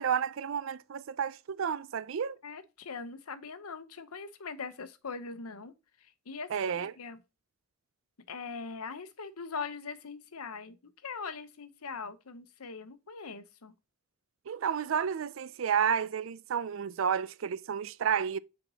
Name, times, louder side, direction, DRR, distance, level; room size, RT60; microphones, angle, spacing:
voice 1, 0.0-2.4 6.5-6.9 14.5-18.4, right 7 dB, 65° right, 0.4 m, -31 dB
voice 2, 2.4-5.7 6.0-7.2 8.3-10.8 11.0-13.7, left 5 dB, 85° left, 0.8 m, -41 dB
8.0 x 4.4 x 2.8 m
head